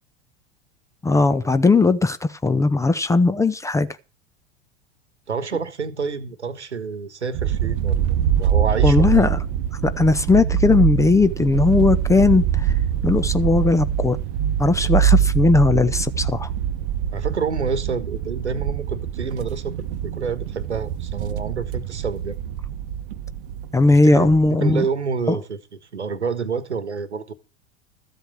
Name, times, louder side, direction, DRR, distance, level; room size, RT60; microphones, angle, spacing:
voice 1, 1.0-3.9 8.8-9.4 9.8-12.5 13.0-14.2 14.6-16.5 23.7-24.8 25.3-25.4, left 3 dB, 10° left, 0.6 m, -18 dB
voice 2, 5.3-8.1 8.4-9.3 17.1-22.4 23.9-25.6 25.9-27.3, right 5 dB, 80° right, 1.4 m, -28 dB
sound 1, 7.3-24.5, right 9 dB, 50° right, 1.0 m, -24 dB
13.5 x 8.0 x 6.2 m
figure-of-eight pair, 80°, 34 cm